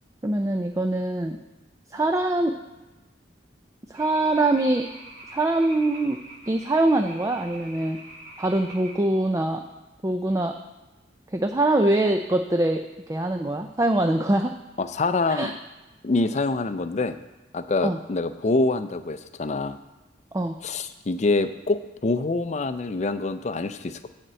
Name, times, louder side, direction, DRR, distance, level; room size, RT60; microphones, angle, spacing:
voice 1, 0.2-1.4 1.9-2.6 3.9-4.9 5.3-6.2 6.5-8.0 8.4-9.6 10.0-10.6 11.3-14.5 15.3-15.5 17.8-18.0 20.3-20.6, right 2 dB, 15° right, 5 dB, 0.4 m, -23 dB
sound 1, 3.9-9.0, right 1 dB, 45° right, 1.8 m, -45 dB
voice 2, 14.8-15.5 16.0-17.2 17.5-19.8 20.6-24.1, left 3 dB, 40° left, 11 dB, 0.5 m, -25 dB
9.3 x 4.4 x 7.5 m, 1.1 s
head